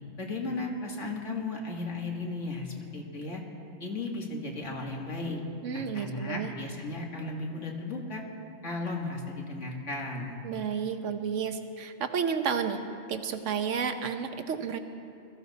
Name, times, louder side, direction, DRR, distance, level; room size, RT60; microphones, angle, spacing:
voice 1, 0.2-3.4 3.8-5.4 5.7-8.2 8.6-10.4, left 2 dB, 65° left, 0 dB, 2.2 m, -35 dB
voice 2, 5.6-6.5 10.4-12.8 13.1-14.8, right 6 dB, 65° right, 8 dB, 1.2 m, -31 dB
22.0 x 14.5 x 4.1 m, 2.6 s
omnidirectional pair, 1.4 m